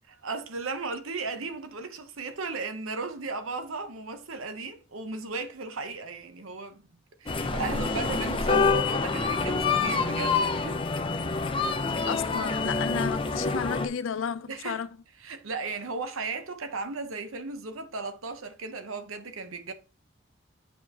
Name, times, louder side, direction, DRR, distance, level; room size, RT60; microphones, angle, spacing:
voice 1, 0.1-6.8 7.2-10.8 14.5-14.8 15.2-19.7, right 4 dB, 85° right, 0.9 m, -36 dB
sound 1, 7.3-13.9, left 4 dB, 25° left, 0.5 m, -27 dB
voice 2, 12.1-14.9, left 6 dB, 75° left, 0.5 m, -32 dB
8.3 x 4.7 x 2.9 m
head